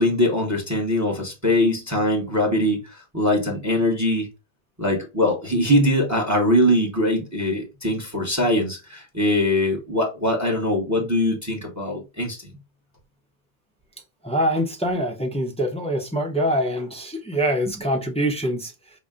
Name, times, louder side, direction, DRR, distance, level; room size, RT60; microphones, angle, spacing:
voice 1, 0.0-4.3 4.8-12.5, left 1 dB, 15° right, 0.9 m, -22 dB
voice 2, 14.2-18.7, equal, 5° left, 0.5 m, -24 dB
5.5 x 2.1 x 3.6 m
omnidirectional pair, 1.2 m